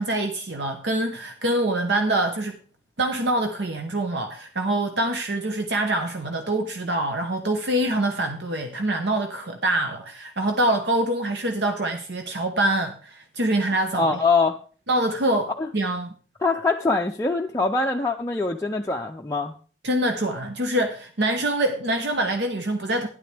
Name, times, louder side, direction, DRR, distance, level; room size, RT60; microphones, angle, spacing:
voice 1, 0.0-2.6 3.0-14.2 14.9-16.1 19.8-23.1, right 1 dB, 70° right, 1.0 m, -25 dB
voice 2, 14.0-14.6 15.6-15.7 16.4-19.5, left 3 dB, 15° left, 0.5 m, -23 dB
12.5 x 10.0 x 3.4 m
head